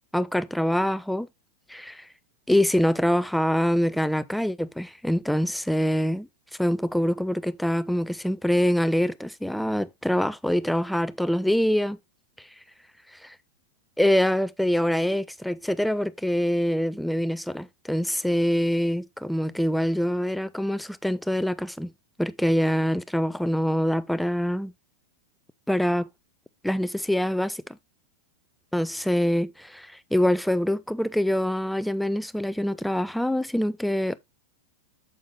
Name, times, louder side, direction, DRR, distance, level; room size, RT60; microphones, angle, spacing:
voice 1, 0.1-1.3 1.7-2.1 2.5-6.3 6.6-12.0 13.2-13.3 14.0-21.9 22.2-24.7 25.7-26.1 26.6-27.6 28.7-34.1, equal, ahead, 0.4 m, -25 dB
8.5 x 7.1 x 2.3 m
figure-of-eight pair, 90°, 0 cm